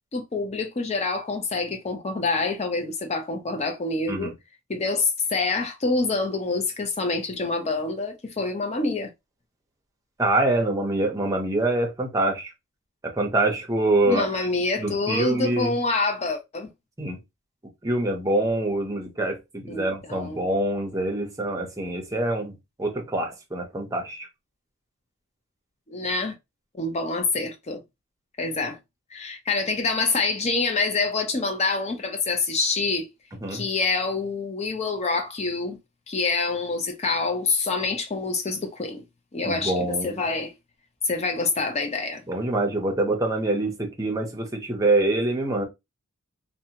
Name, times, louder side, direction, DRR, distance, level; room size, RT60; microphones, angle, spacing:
voice 1, 0.1-4.3 4.7-9.1 14.0-16.7 19.7-20.5 25.9-26.3 26.8-27.8 28.4-28.8 29.1-33.1 33.5-35.8 36.1-39.0 39.3-40.5 41.0-42.2, left 3 dB, 30° left, 0.5 m, -26 dB
voice 2, 10.2-12.5 13.0-14.5 14.8-15.8 17.0-17.2 17.8-24.3 33.4-33.6 39.4-40.2 42.3-45.6, right 2 dB, 15° right, 0.6 m, -25 dB
2.6 x 2.2 x 2.7 m
head